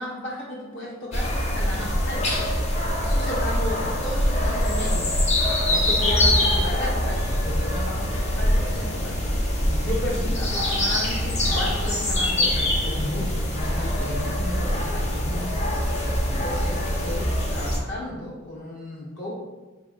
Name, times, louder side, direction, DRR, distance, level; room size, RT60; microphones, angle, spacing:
voice 1, 0.0-2.7 3.0-5.1 5.7-15.5 16.3-19.3, left 1 dB, 60° left, -6 dB, 1.3 m, -34 dB
sound 1, 1.1-17.8, left 1 dB, 35° left, 0.6 m, -24 dB
4.5 x 3.4 x 2.5 m, 1.2 s
head